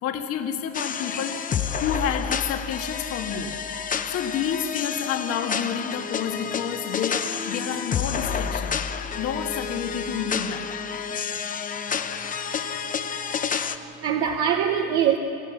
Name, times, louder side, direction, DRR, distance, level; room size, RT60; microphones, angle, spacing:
voice 1, 0.0-3.5 4.1-8.8 9.2-10.7, left 8 dB, 50° left, 5 dB, 1.8 m, -29 dB
sound 1, 0.7-13.8, left 7 dB, 30° left, 0.9 m, -29 dB
voice 2, 11.9-15.2, right 9 dB, 60° right, 3 dB, 1.3 m, -27 dB
27.0 x 15.0 x 7.3 m, 2.7 s
supercardioid pair, 115°, 29 cm